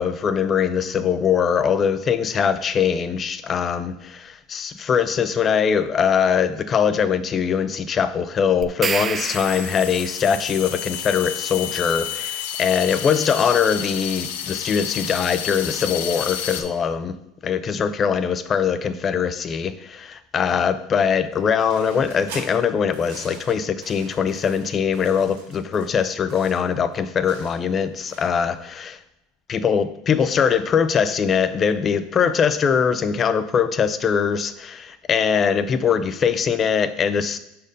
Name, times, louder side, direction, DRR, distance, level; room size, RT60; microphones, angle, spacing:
voice 1, 0.0-17.1 17.4-29.0 29.5-37.4, left 7 dB, 35° left, 12 dB, 0.5 m, -22 dB
sound 1, 8.6-10.2, right 6 dB, 30° right, 0.3 m, -28 dB
sound 2, 9.1-16.6, left 9 dB, 80° left, 0.7 m, -31 dB
sound 3, 21.3-28.5, right 3 dB, 85° right, 1.8 m, -43 dB
5.1 x 4.3 x 5.0 m, 0.89 s
supercardioid pair, 105°, 0 cm